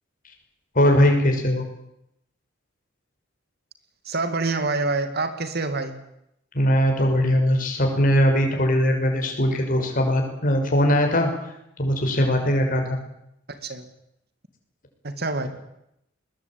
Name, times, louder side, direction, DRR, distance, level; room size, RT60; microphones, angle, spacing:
voice 1, 0.7-1.6 6.5-11.3 11.8-13.0, equal, 45° left, 3 dB, 6.2 m, -20 dB
voice 2, 4.0-6.0 13.6-13.9 15.0-15.5, right 3 dB, 55° right, 9 dB, 2.5 m, -26 dB
21.0 x 21.0 x 8.9 m, 0.81 s
head